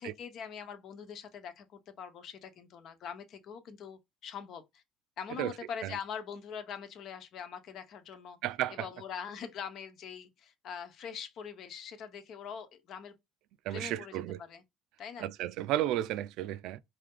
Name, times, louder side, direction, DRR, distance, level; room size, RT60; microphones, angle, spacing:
voice 1, 0.0-4.8 5.2-8.4 8.7-13.1 13.7-14.2 14.5-14.6 15.0-15.3, left 7 dB, 55° left, 1.0 m, -43 dB
voice 2, 8.4-8.9 13.6-14.4 15.2-16.8, right 14 dB, 75° right, 0.5 m, -33 dB
5.0 x 2.8 x 3.7 m
cardioid pair, 135°, 0 cm